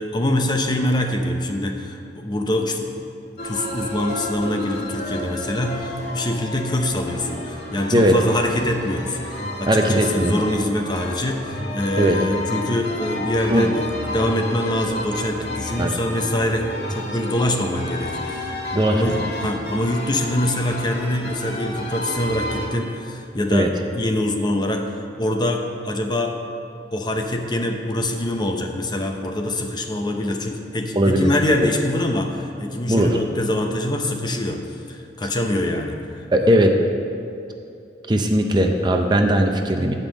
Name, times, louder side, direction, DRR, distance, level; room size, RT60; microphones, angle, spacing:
voice 1, 0.0-2.9 3.4-18.6 18.8-26.4 26.9-36.6, left 1 dB, 25° left, 3 dB, 0.7 m, -24 dB
sound 1, 3.4-22.7, left 1 dB, 65° left, 2.2 m, -31 dB
voice 2, 9.7-10.3 12.0-12.2 13.5-13.7 15.8-15.9 18.7-19.2 23.5-23.7 31.0-31.3 31.6-31.7 32.9-33.2 36.3-36.7 38.1-39.9, right 1 dB, 25° right, 4 dB, 0.6 m, -18 dB
9.7 x 5.3 x 7.3 m, 2.6 s
head